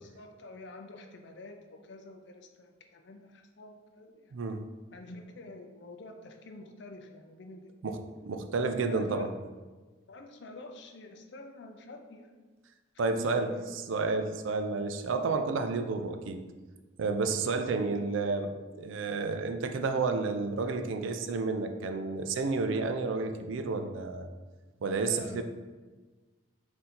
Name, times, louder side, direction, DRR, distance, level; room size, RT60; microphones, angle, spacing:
voice 1, 0.0-4.4 4.9-8.0 8.8-9.3 10.1-12.4 13.0-13.7 15.5-15.9 25.1-25.4, left 2 dB, 60° left, 4 dB, 0.5 m, -48 dB
voice 2, 4.3-4.6 7.8-9.3 13.0-16.4 17.0-24.3 24.8-25.4, right 3 dB, 75° right, 7 dB, 0.4 m, -31 dB
3.8 x 2.7 x 4.3 m, 1.3 s
head